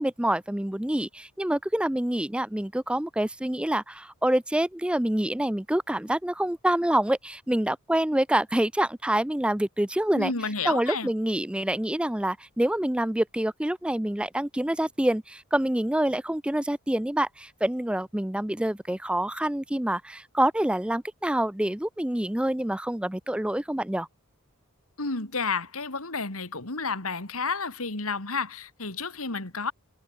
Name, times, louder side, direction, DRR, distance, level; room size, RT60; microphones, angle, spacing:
voice 1, 0.0-10.3 10.7-24.1, right 1 dB, 5° right, 0.4 m, -26 dB
voice 2, 10.1-11.1 25.0-29.7, left 4 dB, 75° left, 3.3 m, -31 dB
head